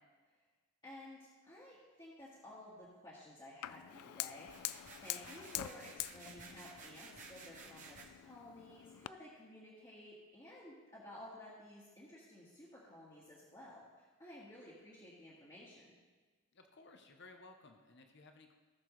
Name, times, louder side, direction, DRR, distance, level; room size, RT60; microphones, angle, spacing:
voice 1, 0.8-4.7 5.0-16.0, left 1 dB, 20° left, -9 dB, 1.6 m, -54 dB
Fire, 3.6-9.1, left 14 dB, 90° left, 0.3 m, -46 dB
sound 1, 4.4-8.1, right 4 dB, 35° right, 1.1 m, -55 dB
voice 2, 16.5-18.6, left 3 dB, 50° left, 5 dB, 0.8 m, -58 dB
18.0 x 6.7 x 3.2 m, 1.4 s
head